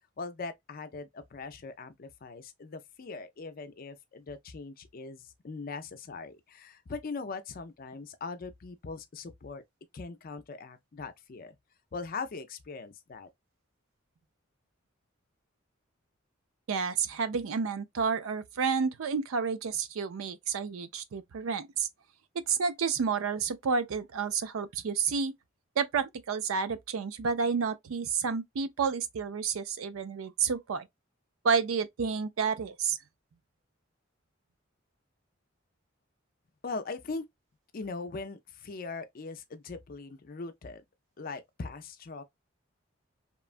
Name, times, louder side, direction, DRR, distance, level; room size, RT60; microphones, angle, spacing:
voice 1, 0.2-9.6 9.9-11.6 11.9-13.3 36.6-37.3 37.7-40.8 41.2-42.2, left 4 dB, 45° left, 0.4 m, -40 dB
voice 2, 16.7-21.9 22.5-25.3 25.8-30.9 31.4-33.0, right 6 dB, 85° right, 0.4 m, -30 dB
3.0 x 2.2 x 2.4 m
head